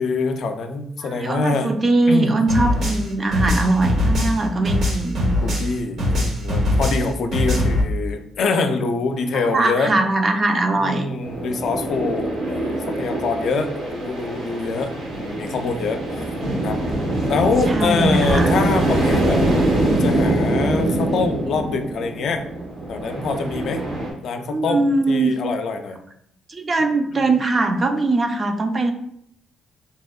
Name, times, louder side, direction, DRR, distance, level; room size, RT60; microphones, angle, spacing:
voice 1, 0.0-1.7 2.1-2.4 5.4-9.9 10.8-16.3 16.6-16.8 17.2-19.4 19.8-22.4 22.9-23.8 24.2-26.0 27.2-27.3, left 4 dB, 70° left, 6 dB, 0.4 m, -25 dB
voice 2, 1.0-5.3 9.3-11.1 17.7-18.5 24.5-25.3 26.5-28.9, right 2 dB, 35° right, 6 dB, 0.4 m, -21 dB
sound 1, 2.5-5.7 6.0-7.8, left 1 dB, 60° right, 1.0 m, -21 dB
sound 2, 11.2-24.1, right 1 dB, 80° right, 1.3 m, -23 dB
3.4 x 2.9 x 2.3 m, 0.69 s
cardioid pair, 90°, 0 cm